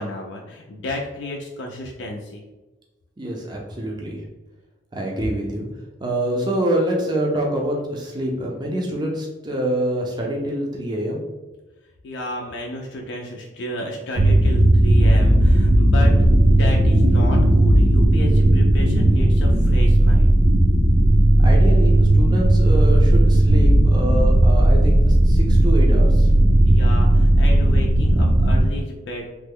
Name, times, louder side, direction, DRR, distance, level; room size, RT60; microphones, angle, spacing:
voice 1, 0.0-2.4 12.0-20.3 26.7-29.3, left 1 dB, 70° left, 0 dB, 0.4 m, -32 dB
voice 2, 3.2-4.2 4.9-5.6 6.0-11.2 21.4-26.3, right 1 dB, 25° right, 0 dB, 0.4 m, -26 dB
sound 1, 14.2-28.6, right 1 dB, 80° right, 0.5 m, -15 dB
3.1 x 2.0 x 3.5 m, 1.1 s
head